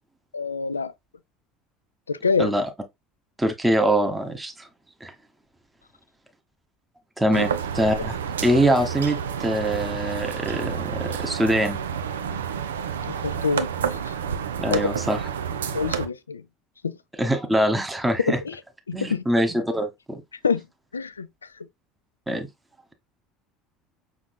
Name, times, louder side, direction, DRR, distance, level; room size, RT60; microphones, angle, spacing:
voice 1, 0.3-0.9 2.1-2.5 7.3-7.5 13.0-14.1 14.7-14.9 15.7-16.4 16.8-17.0 18.3-18.6 18.9-19.2 20.4-20.6 20.9-21.3, left 5 dB, 80° left, 0.3 m, -26 dB
voice 2, 3.4-4.7 5.0-5.1 7.2-7.5 7.7-8.1 8.4-11.8 14.6-15.2 17.2-18.4 18.9-20.2 22.3-22.5, right 1 dB, 10° right, 1.1 m, -23 dB
sound 1, 7.3-16.1, right 7 dB, 70° right, 0.5 m, -29 dB
6.1 x 3.6 x 2.2 m
figure-of-eight pair, 65°, 0 cm